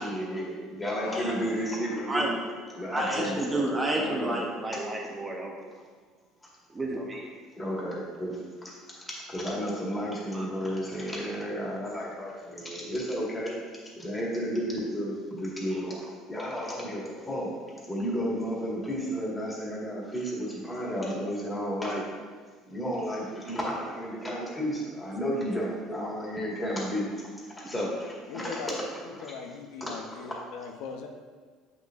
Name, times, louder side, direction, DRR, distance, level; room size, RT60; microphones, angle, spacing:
voice 1, 0.0-2.3 2.8-4.4 7.5-8.4 8.6-8.7 9.3-13.5 13.9-15.9 16.3-17.5 17.9-22.0 22.7-27.1 27.6-28.8 29.2-29.3 29.8-30.4, equal, 10° left, -4 dB, 1.6 m, -32 dB
voice 2, 1.0-1.4 2.9-3.6 28.3-28.8 29.0-31.1, left 6 dB, 80° left, 4 dB, 0.6 m, -39 dB
voice 3, 2.9-5.5 6.7-7.3 10.3-10.4 15.9-16.0 27.8-27.9, right 1 dB, 20° right, -1 dB, 0.8 m, -31 dB
7.5 x 6.2 x 2.5 m, 1.5 s
cardioid pair, 140°, 0 cm